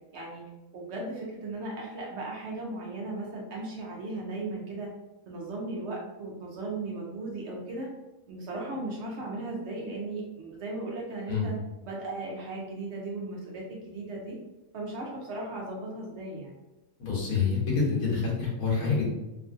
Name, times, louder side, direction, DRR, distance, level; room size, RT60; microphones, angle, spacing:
voice 1, 0.7-4.9 5.3-7.9 8.3-11.6 11.8-14.4 14.7-16.5, right 2 dB, 65° right, -3 dB, 0.7 m, -36 dB
voice 2, 17.0-19.1, left 5 dB, 85° left, -3 dB, 1.4 m, -27 dB
3.0 x 2.5 x 2.4 m, 1.0 s
omnidirectional pair, 1.5 m